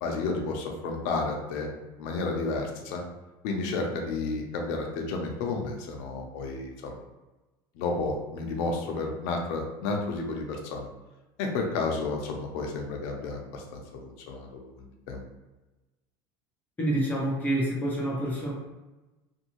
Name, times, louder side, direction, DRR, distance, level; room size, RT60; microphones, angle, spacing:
voice 1, 0.0-1.7 2.0-3.0 3.4-6.9 7.7-10.9 11.4-15.2, left 3 dB, 75° left, 2 dB, 0.7 m, -31 dB
voice 2, 16.8-18.5, right 1 dB, 15° left, -5 dB, 0.8 m, -27 dB
2.6 x 2.6 x 3.0 m, 1.1 s
cardioid pair, 145°, 10 cm